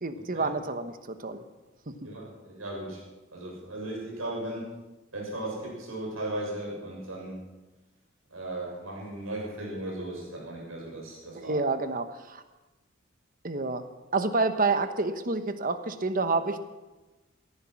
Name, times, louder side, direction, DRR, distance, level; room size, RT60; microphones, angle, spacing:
voice 1, 0.0-1.4 11.3-12.4 13.4-13.8 14.1-16.6, right 3 dB, 45° right, 10 dB, 1.1 m, -28 dB
voice 2, 2.0-3.0 3.3-4.8 5.1-7.4 8.3-11.6, right 1 dB, 85° right, -2 dB, 6.9 m, -36 dB
17.0 x 14.0 x 5.9 m, 1.1 s
head